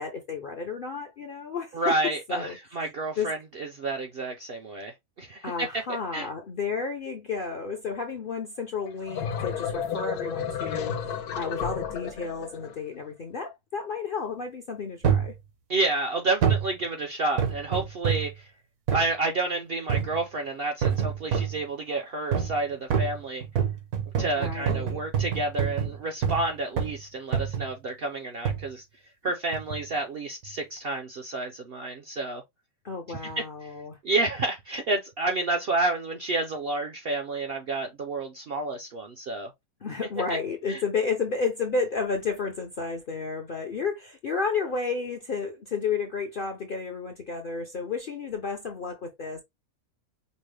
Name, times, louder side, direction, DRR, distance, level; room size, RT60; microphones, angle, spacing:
voice 1, 0.0-2.0 2.3-2.6 3.2-3.3 5.4-15.3 24.4-25.0 32.8-34.0 39.8-49.4, left 5 dB, 55° left, 0.5 m, -32 dB
voice 2, 1.7-5.8 6.1-6.3 15.7-18.5 18.9-23.5 24.2-28.8 29.2-32.4 33.4-33.5 34.0-39.5 40.7-40.8, right 2 dB, 65° right, 0.6 m, -30 dB
sound 1, 8.9-12.7, left 7 dB, 80° left, 1.2 m, -32 dB
sound 2, 15.0-15.4 16.4-16.7 17.4-18.3 18.9-19.1 19.9-20.2 20.8-21.6 22.3-22.6 22.9-26.5 26.8-27.0 27.3-27.7 28.4-28.7 29.5-29.8 30.4-30.5, right 7 dB, 80° right, 1.4 m, -27 dB
5.2 x 2.0 x 3.2 m
omnidirectional pair, 1.6 m